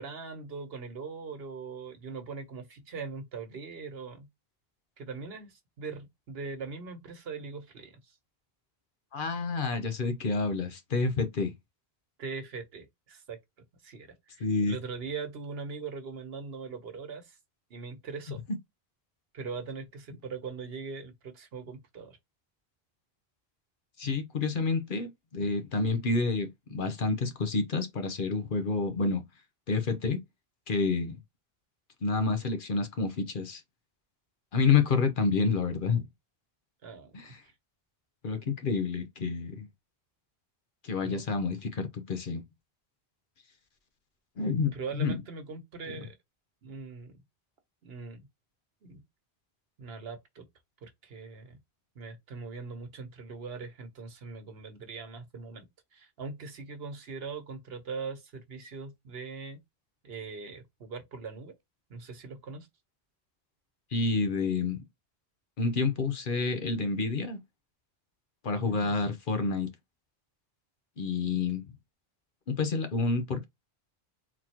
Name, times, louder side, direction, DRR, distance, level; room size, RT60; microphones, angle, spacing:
voice 1, 0.0-4.3 5.0-8.2 12.2-13.4 13.8-17.4 17.7-18.4 19.3-22.2 36.8-37.3 41.0-41.4 44.7-46.2 46.6-47.2 47.8-48.2 48.8-49.0 49.8-50.4 50.8-51.6 51.9-55.7 55.9-59.6 60.0-61.5 61.9-62.7 68.6-69.1, right 4 dB, 70° right, 1.2 m, -41 dB
voice 2, 9.1-11.5 14.4-14.8 24.0-29.2 29.7-30.2 30.7-31.2 32.0-33.6 34.5-36.0 37.1-37.4 38.2-39.7 40.8-42.4 44.4-45.2 63.9-64.8 65.6-67.4 68.4-69.7 71.0-71.7 72.5-73.4, left 4 dB, 55° left, 0.9 m, -29 dB
4.1 x 3.0 x 2.8 m
omnidirectional pair, 1.0 m